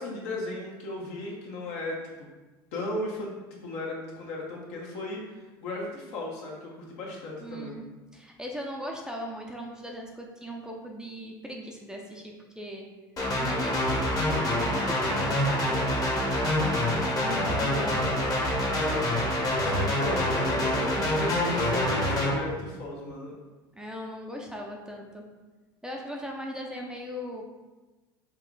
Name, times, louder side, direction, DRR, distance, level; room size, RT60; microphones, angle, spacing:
voice 1, 0.0-2.0 2.7-3.3 3.6-7.8 17.2-17.6 19.3-23.4, left 2 dB, 65° left, -2 dB, 1.2 m, -36 dB
voice 2, 7.4-7.9 8.1-12.9 13.4-16.3 17.2-18.4 23.7-25.3 25.8-27.4, equal, 5° right, 0 dB, 0.5 m, -39 dB
sound 1, 13.2-22.3, left 1 dB, 30° left, 1.1 m, -26 dB
Boom, 19.9-23.0, right 3 dB, 60° right, 0.7 m, -43 dB
4.4 x 2.4 x 3.9 m, 1.2 s
hypercardioid pair, 90°, 12 cm